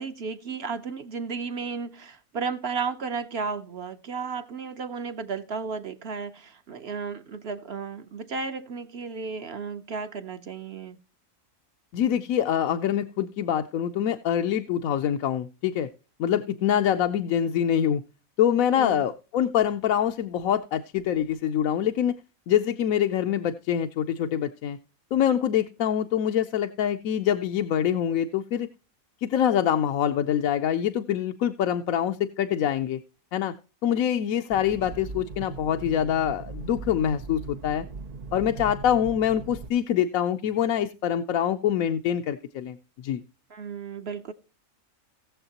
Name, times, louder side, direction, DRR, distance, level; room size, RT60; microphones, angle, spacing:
voice 1, 0.0-11.0 18.7-19.0 43.5-44.3, right 5 dB, 55° right, 0.9 m, -34 dB
voice 2, 11.9-15.9 16.2-18.0 18.4-22.2 22.5-24.8 25.1-28.7 29.2-33.0 33.3-33.5 33.8-37.9 38.3-42.8 43.0-43.2, left 9 dB, 75° left, 1.1 m, -25 dB
sound 1, 34.5-39.7, right 4 dB, 70° right, 0.3 m, -39 dB
17.5 x 7.2 x 2.8 m
omnidirectional pair, 1.5 m